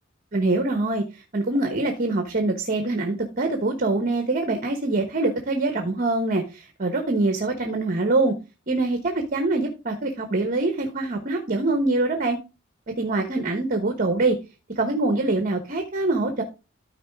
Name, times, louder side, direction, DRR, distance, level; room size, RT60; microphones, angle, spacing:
voice 1, 0.3-8.4 8.7-12.4 13.0-14.4 14.8-16.4, right 2 dB, 45° right, 5 dB, 1.0 m, -24 dB
13.0 x 4.6 x 3.5 m, 0.29 s
head